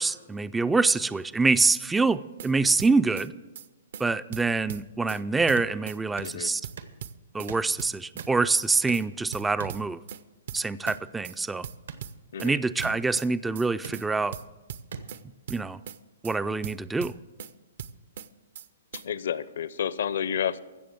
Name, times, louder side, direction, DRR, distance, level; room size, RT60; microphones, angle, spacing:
voice 1, 0.0-3.3 4.0-6.6 7.3-10.0 10.5-11.7 12.4-14.4 15.5-15.8 16.2-17.1, right 3 dB, 5° right, 15 dB, 0.3 m, -25 dB
sound 1, 2.1-2.5 2.8-3.3 3.6-3.7 3.9-4.1 4.3-5.2 5.5-6.0 6.2-6.4 6.6-7.5 7.8-8.3 8.6-8.7 8.9-9.1 9.3-10.2 10.5-11.0 11.2-11.4 11.6-12.5 12.8-13.3 13.6-13.7 13.9-14.1 14.3-15.2 15.5-16.0 16.2-16.4 16.6-17.5 17.8-18.3 18.6-18.7 18.9-19.1, right 8 dB, 60° right, 0.6 m, -39 dB
sound 2, 5.6-5.7 6.2-6.3 6.8-7.0 7.5-7.7 8.2-8.4 8.9-9.1 9.6-9.8 10.9-11.1 11.9-12.0 12.8-13.0 13.8-14.0 14.9-15.0, right 6 dB, 80° right, 1.2 m, -39 dB
voice 2, 6.2-6.5 12.3-12.6 18.9-20.6, left 8 dB, 70° left, 17 dB, 0.7 m, -30 dB
15.5 x 6.8 x 7.7 m, 1.1 s
hypercardioid pair, 140°, 0 cm